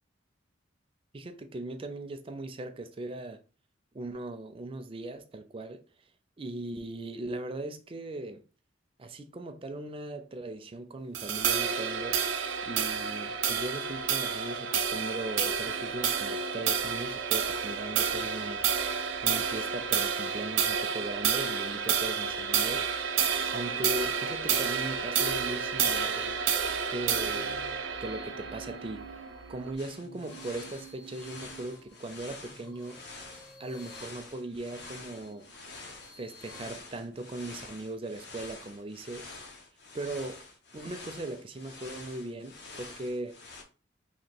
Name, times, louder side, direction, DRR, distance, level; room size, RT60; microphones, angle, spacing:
voice 1, 1.1-3.4 3.9-5.8 6.4-8.4 9.0-12.2 12.6-18.6 19.2-26.4 26.9-27.6 28.0-29.2 29.5-33.1 33.6-35.5 36.2-39.3 39.9-40.4 40.7-43.4, right 2 dB, 30° right, 0.4 m, -39 dB
sound 1, 11.1-29.7, right 7 dB, 80° right, 0.5 m, -30 dB
sound 2, 27.0-36.6, right 3 dB, 20° left, 0.6 m, -52 dB
sound 3, 29.8-43.6, left 3 dB, 60° left, 0.8 m, -47 dB
3.0 x 2.8 x 4.3 m
head